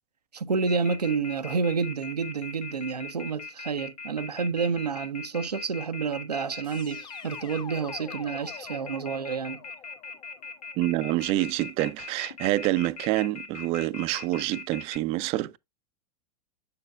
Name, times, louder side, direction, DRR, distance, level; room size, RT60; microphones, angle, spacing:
voice 1, 0.3-9.6, right 5 dB, 85° right, 0.6 m, -29 dB
Telephone, 0.7-15.0, left 5 dB, 70° left, 1.6 m, -40 dB
sound 1, 6.6-11.6, left 8 dB, 20° left, 0.7 m, -47 dB
voice 2, 10.8-15.6, right 17 dB, 30° right, 0.4 m, -27 dB
7.9 x 6.7 x 2.3 m
figure-of-eight pair, 90°, 20 cm